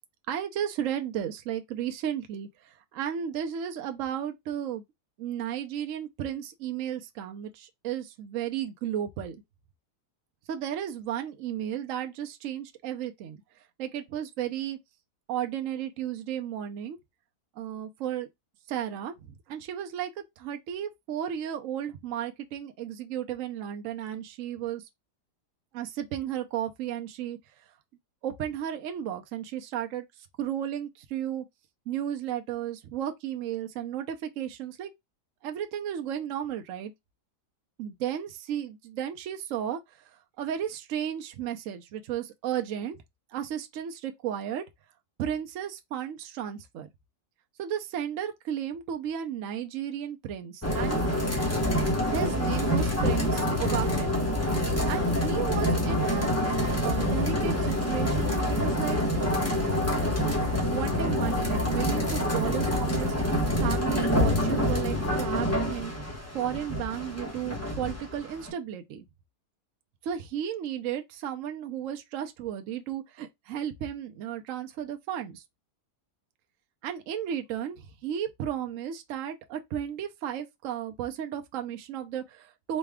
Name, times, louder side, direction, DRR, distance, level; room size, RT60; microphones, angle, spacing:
voice 1, 0.3-4.8 5.2-9.4 10.5-13.4 13.8-14.8 15.3-17.0 17.6-18.3 18.7-24.9 25.7-27.4 28.2-30.0 30.4-31.4 31.9-34.9 35.4-36.9 37.8-43.0 43.3-44.6 45.2-46.9 47.6-51.0 52.1-54.2 54.9-56.3 56.8-59.6 60.7-65.9 66.3-69.0 70.0-75.4 76.8-82.8, right 10 dB, 65° right, 0.9 m, -34 dB
sound 1, 50.6-68.5, left 1 dB, 15° left, 0.7 m, -26 dB
4.1 x 2.2 x 3.4 m
omnidirectional pair, 1.7 m